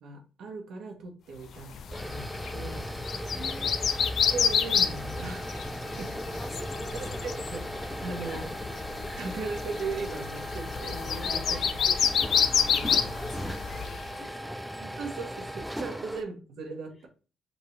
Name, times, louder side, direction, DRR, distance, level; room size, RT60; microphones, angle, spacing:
voice 1, 0.0-2.8 4.3-5.6 5.9-6.1 7.0-8.4 9.2-11.6 12.3-12.9 14.8-17.1, right 4 dB, 70° right, 2 dB, 1.2 m, -38 dB
sound 1, 1.7-14.1, left 7 dB, 60° left, 0.5 m, -29 dB
sound 2, 1.7-16.2, equal, ahead, 0.4 m, -37 dB
voice 2, 3.1-4.3 6.1-7.3 8.0-8.5 9.0-9.3 11.2-11.9 12.5-14.6 15.9-16.0, left 1 dB, 20° left, 0 dB, 1.9 m, -47 dB
5.4 x 2.7 x 3.2 m, 0.35 s
cardioid pair, 90°, 0 cm